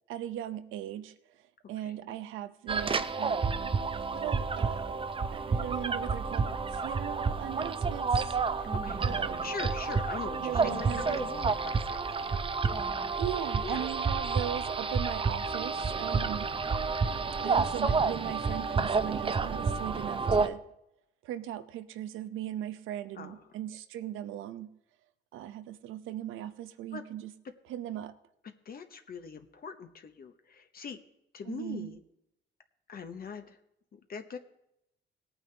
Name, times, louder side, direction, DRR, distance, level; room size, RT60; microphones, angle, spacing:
voice 1, 0.1-3.7 4.1-5.1 5.3-8.4 9.0-9.5 10.4-11.2 13.2-16.6 17.4-20.6 21.2-24.8 25.3-27.3 27.7-28.2 31.4-32.0, right 12 dB, 90° right, 0.7 m, -39 dB
sound 1, 2.7-20.5, right 4 dB, 25° right, 0.6 m, -30 dB
voice 2, 8.6-9.0 9.4-12.4 13.6-13.9 23.2-23.4 26.9-27.1 28.6-31.0 31.3-32.0 32.9-33.6 33.9-34.4, left 6 dB, 50° left, 0.9 m, -42 dB
18.0 x 9.0 x 3.3 m
cardioid pair, 90°, 20 cm